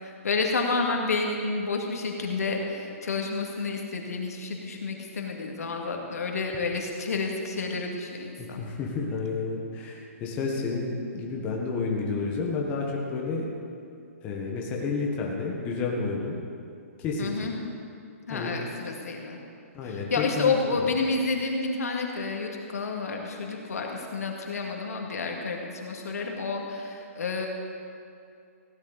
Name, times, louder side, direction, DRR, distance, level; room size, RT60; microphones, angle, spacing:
voice 1, 0.0-8.6 17.2-17.5 18.3-19.4 19.8-27.5, left 4 dB, 90° left, 1 dB, 2.1 m, -30 dB
voice 2, 8.4-13.4 14.2-16.3 17.0-17.5 18.3-18.5 19.7-20.5, left 4 dB, 15° left, -1 dB, 1.2 m, -30 dB
16.0 x 10.5 x 4.0 m, 2.5 s
hypercardioid pair, 170°, 8 cm